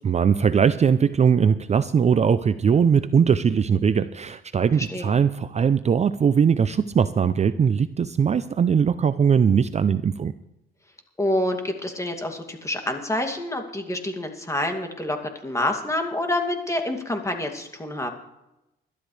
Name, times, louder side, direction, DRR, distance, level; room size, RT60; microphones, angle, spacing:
voice 1, 0.0-10.3, right 7 dB, 35° right, 13 dB, 0.5 m, -20 dB
voice 2, 4.8-5.1 11.2-15.2 15.4-18.1, left 1 dB, 15° left, 4 dB, 2.5 m, -27 dB
20.5 x 12.5 x 3.3 m, 0.90 s
cardioid pair, 90°, 20 cm